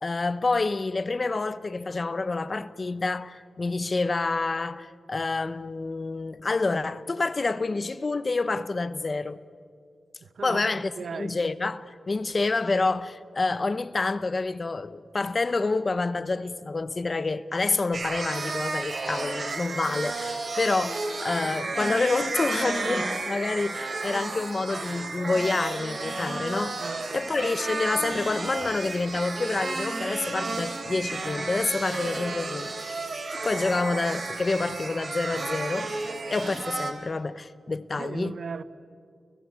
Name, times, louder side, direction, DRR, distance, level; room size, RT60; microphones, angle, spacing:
voice 1, 0.0-9.4 10.4-38.4, left 3 dB, 35° left, 0.8 m, -28 dB
voice 2, 10.4-10.7 11.0-11.4 26.8-27.2 36.1-36.2 38.0-38.6, right 5 dB, 70° right, 0.7 m, -37 dB
sound 1, 17.9-36.9, right 3 dB, 55° right, 3.2 m, -32 dB
30.0 x 17.5 x 8.6 m
wide cardioid pair, 125°, 0 cm